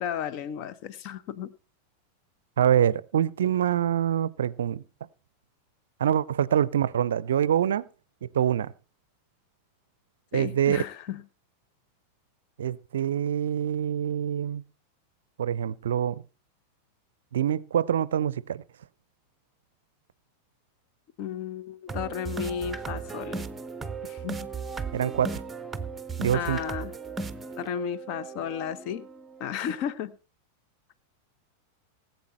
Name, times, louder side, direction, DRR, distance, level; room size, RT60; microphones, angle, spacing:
voice 1, 0.0-1.5 10.3-11.2 21.2-23.4 24.0-24.5 26.3-26.9 27.6-29.1 29.4-30.1, left 9 dB, 40° left, 0.9 m, -33 dB
voice 2, 2.6-4.8 6.0-7.9 8.2-8.7 10.3-10.8 12.6-14.6 15.4-16.2 17.3-18.6 24.9-25.4 26.2-26.6, right 9 dB, 65° right, 0.5 m, -25 dB
sound 1, 21.9-29.8, right 4 dB, 10° right, 0.8 m, -36 dB
18.5 x 8.2 x 4.3 m
figure-of-eight pair, 90°, 0 cm